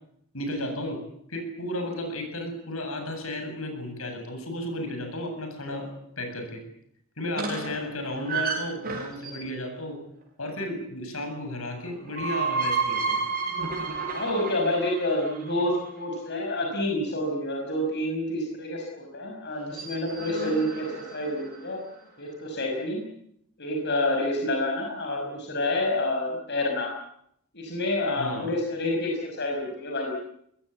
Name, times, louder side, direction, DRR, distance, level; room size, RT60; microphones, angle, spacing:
voice 1, 0.3-1.0 1.3-6.6 7.2-10.0 10.4-13.2 28.2-28.5, left 1 dB, 75° left, 5 dB, 7.9 m, -33 dB
sound 1, 7.3-9.6 11.8-15.9 19.5-21.7, right 4 dB, 45° right, 6.4 m, -31 dB
voice 2, 7.4-7.8 14.1-21.8 22.2-23.1 23.6-26.9 27.5-30.1, left 1 dB, 55° left, 1 dB, 5.7 m, -28 dB
24.0 x 21.0 x 8.6 m, 0.73 s
head